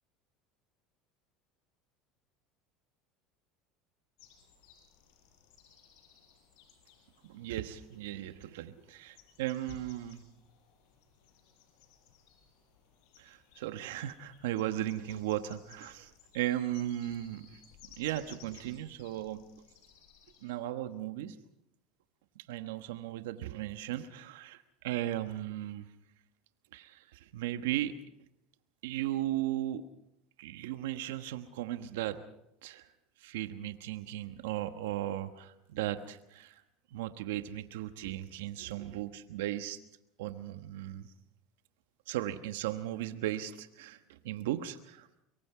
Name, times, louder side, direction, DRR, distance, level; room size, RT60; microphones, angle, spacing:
sound 1, 4.2-20.5, left 7 dB, 75° left, 5.9 m, -60 dB
voice 1, 7.2-10.2 13.2-17.6 17.9-19.4 20.4-21.4 22.3-25.9 26.7-27.9 28.8-29.8 30.4-32.2 32.6-32.9 33.2-36.6 36.9-39.8 40.2-41.1 42.1-45.1, right 13 dB, 85° right, 9 dB, 1.2 m, -36 dB
24.5 x 23.0 x 4.9 m, 0.83 s
supercardioid pair, 110°, 0 cm